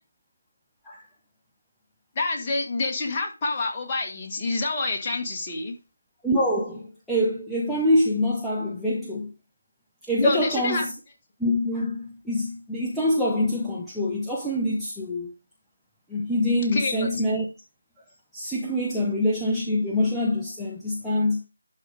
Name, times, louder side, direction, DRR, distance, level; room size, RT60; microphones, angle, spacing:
voice 1, 2.1-5.7 10.2-10.8 16.7-17.1, left 3 dB, 20° left, 1.6 m, -27 dB
voice 2, 6.2-9.3 10.1-10.9 11.4-15.3 16.1-17.4 18.3-21.4, left 1 dB, ahead, 0.9 m, -25 dB
11.5 x 4.0 x 4.8 m
figure-of-eight pair, 160°, 0 cm